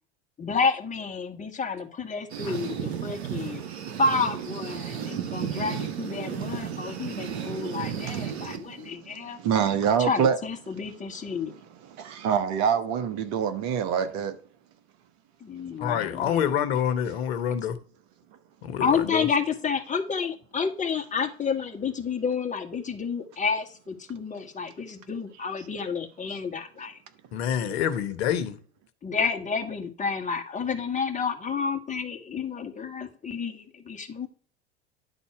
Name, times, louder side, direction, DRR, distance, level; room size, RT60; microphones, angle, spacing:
voice 1, 0.4-3.6 4.0-9.4 10.0-11.5 15.4-16.8 18.8-27.0 29.0-34.3, left 5 dB, 25° left, 1.9 m, -30 dB
sound 1, 2.3-8.9, right 8 dB, 80° right, 1.2 m, -33 dB
voice 2, 4.9-5.5 6.7-8.0 8.3-10.4 11.9-14.4 27.6-27.8, right 7 dB, 55° right, 1.4 m, -27 dB
voice 3, 15.8-17.7 18.6-19.2 27.3-28.6, left 9 dB, 70° left, 1.2 m, -27 dB
11.0 x 4.2 x 5.9 m
hypercardioid pair, 80°, 32 cm